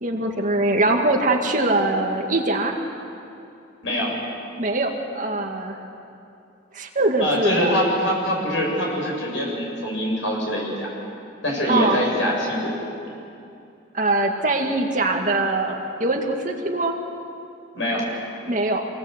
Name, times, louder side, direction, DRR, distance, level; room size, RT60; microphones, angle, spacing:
voice 1, 0.0-2.8 4.6-5.8 6.7-7.7 11.7-12.0 13.9-16.9 18.5-18.8, right 2 dB, 40° right, 2 dB, 2.2 m, -22 dB
voice 2, 7.2-10.9 11.4-12.7 17.7-18.1, equal, 75° left, -2 dB, 8.0 m, -23 dB
27.0 x 19.5 x 8.3 m, 2.6 s
head